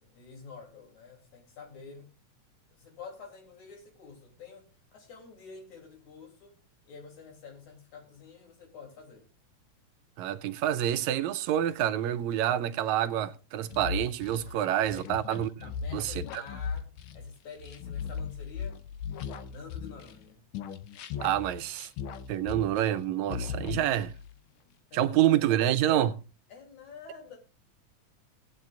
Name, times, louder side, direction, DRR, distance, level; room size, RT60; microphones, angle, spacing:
voice 1, 0.0-2.1 2.7-6.6 6.9-9.3 12.3-12.4 14.4-15.2 15.6-18.8 19.1-20.4 24.9-25.4 26.5-27.4, left 5 dB, 75° left, 4.2 m, -48 dB
voice 2, 10.2-15.7 15.9-16.4 21.2-21.9 22.3-24.1 24.9-26.2, right 11 dB, 80° right, 1.9 m, -27 dB
sound 1, 13.7-20.2 20.5-23.0 23.3-24.4, left 7 dB, 90° left, 1.1 m, -38 dB
18.5 x 8.9 x 2.4 m
omnidirectional pair, 3.4 m